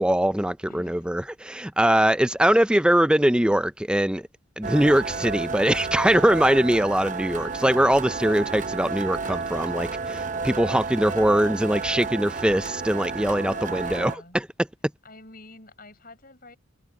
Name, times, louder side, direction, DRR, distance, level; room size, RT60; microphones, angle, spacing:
voice 1, 0.0-4.3 4.6-14.5, right 1 dB, 5° right, 0.4 m, -22 dB
voice 2, 0.6-1.2 7.2-7.4 13.4-14.4 15.0-16.6, left 2 dB, 45° left, 7.6 m, -47 dB
sound 1, 4.6-14.2, right 4 dB, 35° right, 0.8 m, -31 dB
head